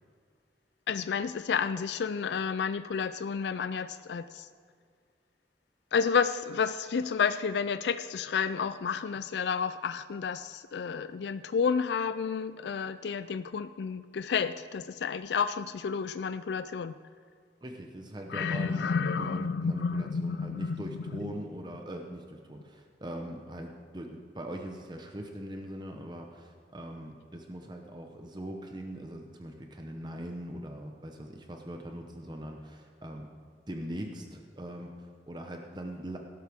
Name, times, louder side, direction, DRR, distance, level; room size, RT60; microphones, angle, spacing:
voice 1, 0.9-4.5 5.9-16.9 18.3-20.8 21.2-21.3, left 6 dB, 75° left, 12 dB, 0.4 m, -31 dB
voice 2, 17.6-33.3 33.7-36.2, right 1 dB, 25° right, 3 dB, 0.9 m, -41 dB
18.5 x 11.5 x 3.6 m, 2.1 s
head